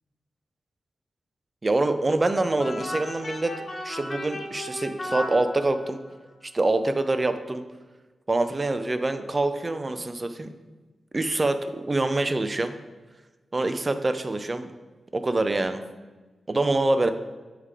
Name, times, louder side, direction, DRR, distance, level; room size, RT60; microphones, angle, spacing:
voice 1, 1.6-3.5 3.8-6.0 6.5-7.6 8.3-10.5 11.1-12.8 13.5-14.7 15.1-15.8 16.5-17.1, right 2 dB, 25° right, 9 dB, 0.4 m, -25 dB
sound 1, 2.6-6.1, left 1 dB, 35° left, 0.8 m, -35 dB
7.5 x 3.3 x 4.8 m, 1.3 s
wide cardioid pair, 115°, 0 cm